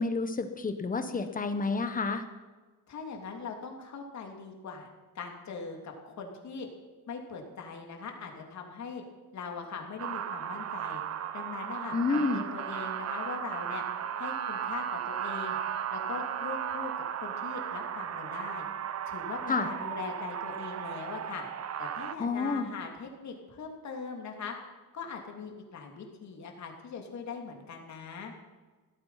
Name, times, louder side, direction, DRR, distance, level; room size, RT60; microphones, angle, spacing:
voice 1, 0.0-2.2 11.9-12.4 19.5-19.7 22.2-22.7, left 4 dB, 25° left, 8 dB, 1.4 m, -29 dB
voice 2, 2.9-4.9 5.1-6.7 7.1-9.0 9.3-11.0 11.3-13.8 14.2-15.6 15.9-16.9 17.2-18.7 19.0-21.5 21.8-24.5 24.9-28.3, left 5 dB, 50° left, 2 dB, 3.1 m, -41 dB
sound 1, 10.0-22.1, right 9 dB, 45° right, 1.0 m, -35 dB
17.0 x 13.5 x 5.9 m, 1.3 s
cardioid pair, 175°, 35 cm